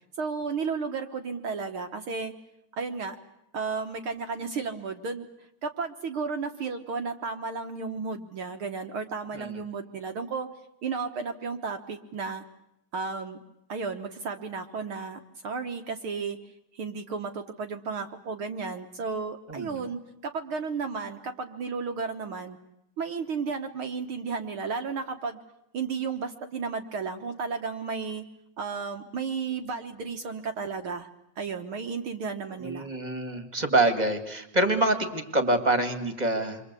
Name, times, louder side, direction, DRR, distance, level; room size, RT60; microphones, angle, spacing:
voice 1, 0.2-2.3 2.7-3.2 3.5-5.3 5.6-10.5 10.8-12.4 12.9-13.4 13.7-16.4 16.7-22.6 23.0-25.4 25.7-28.2 28.6-31.1 31.4-32.9, right 5 dB, 55° right, 6 dB, 1.7 m, -33 dB
voice 2, 19.5-19.9 32.6-36.7, right 2 dB, 15° right, 8 dB, 1.7 m, -26 dB
28.5 x 24.0 x 8.3 m, 0.83 s
omnidirectional pair, 3.4 m